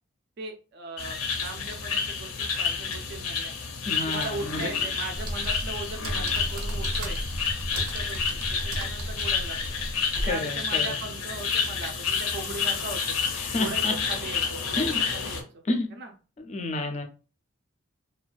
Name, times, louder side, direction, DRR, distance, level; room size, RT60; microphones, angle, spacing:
voice 1, 0.4-3.5 4.1-7.2 7.7-9.8 10.2-13.2 13.6-15.6 15.9-16.1, right 3 dB, 50° right, 0.3 m, -39 dB
sound 1, 1.0-15.4, left 6 dB, 90° left, 0.5 m, -30 dB
voice 2, 3.9-4.6 10.3-11.0 13.3-13.9 14.8-15.0 15.7-15.9 16.4-17.0, left 2 dB, 30° left, 0.3 m, -29 dB
sound 2, 5.1-10.3, right 1 dB, 90° right, 0.6 m, -33 dB
2.3 x 2.2 x 2.4 m
head